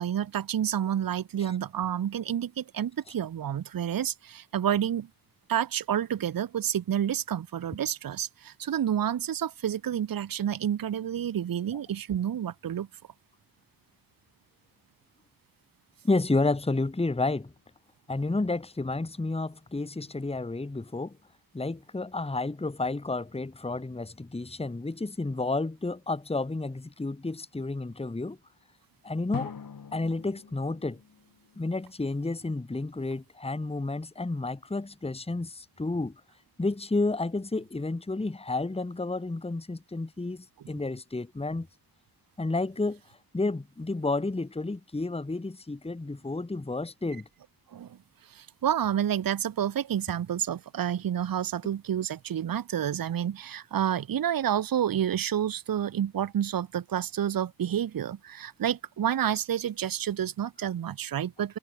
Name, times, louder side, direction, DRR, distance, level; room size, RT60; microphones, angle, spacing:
voice 1, 0.0-5.1 5.5-12.9 47.7-48.0 48.3-61.6, right 10 dB, 60° right, 0.7 m, -29 dB
voice 2, 16.0-17.5 18.1-21.1 21.5-28.4 29.0-29.5 29.9-31.0 31.6-36.1 36.6-41.7 42.4-43.0 43.3-47.3, left 2 dB, 15° left, 1.2 m, -31 dB
Drum, 29.3-32.0, left 6 dB, 60° left, 2.2 m, -42 dB
wide cardioid pair, 100°, 38 cm